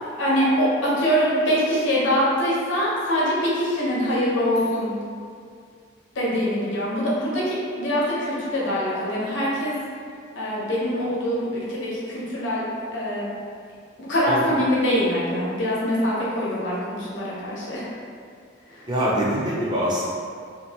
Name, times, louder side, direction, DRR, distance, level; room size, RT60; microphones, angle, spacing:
voice 1, 0.0-4.9 6.1-9.7 10.3-12.6 12.9-13.3 14.0-17.9 18.7-18.9, equal, 70° left, -7 dB, 0.8 m, -24 dB
voice 2, 18.9-20.0, equal, 25° right, -6 dB, 0.5 m, -24 dB
2.7 x 2.6 x 2.8 m, 2.2 s
head